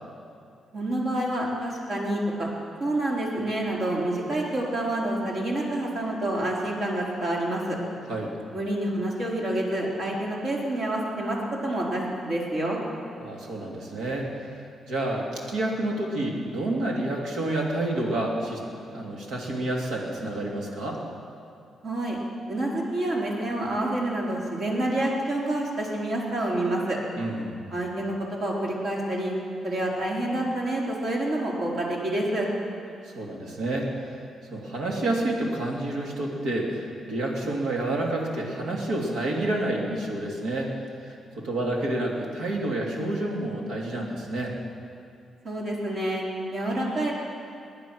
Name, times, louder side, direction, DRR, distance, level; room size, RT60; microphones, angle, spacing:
voice 1, 0.7-2.5 2.8-7.8 8.5-12.8 21.8-22.2 22.5-27.0 27.7-29.3 29.6-32.5 45.4-46.2 46.5-47.1, right 1 dB, 60° right, -3 dB, 4.0 m, -28 dB
voice 2, 13.2-18.6 18.9-21.0 27.2-27.6 33.0-34.2 34.5-40.7 41.0-44.5, right 1 dB, 85° right, -1 dB, 2.9 m, -29 dB
19.5 x 10.5 x 6.3 m, 2.5 s
cardioid pair, 95°, 0 cm